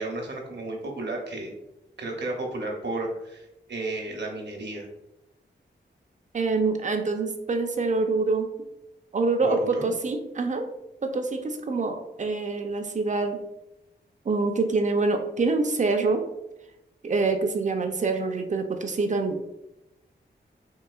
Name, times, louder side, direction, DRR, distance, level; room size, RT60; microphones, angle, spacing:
voice 1, 0.0-1.5 2.0-4.9 9.4-9.9, right 2 dB, 65° right, 1 dB, 0.8 m, -33 dB
voice 2, 6.3-8.5 9.1-10.7 11.0-13.4 14.3-16.2 17.0-19.4, right 3 dB, 40° right, 6 dB, 0.5 m, -25 dB
3.8 x 2.8 x 2.3 m, 0.91 s
wide cardioid pair, 75°, 19 cm